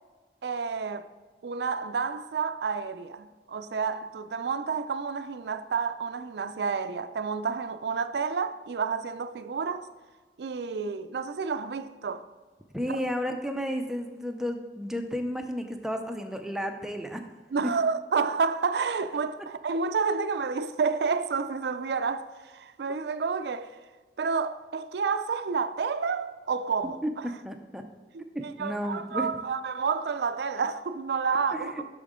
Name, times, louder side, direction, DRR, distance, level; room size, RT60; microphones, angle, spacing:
voice 1, 0.4-1.1 1.4-9.9 10.4-12.2 12.9-13.0 17.5-23.8 24.2-27.3 28.1-31.8, right 5 dB, 75° right, 0.4 m, -30 dB
voice 2, 12.7-17.2 27.0-27.1 27.4-27.8 28.3-29.3 31.5-31.8, equal, 5° right, 0.4 m, -32 dB
8.3 x 6.3 x 3.7 m
head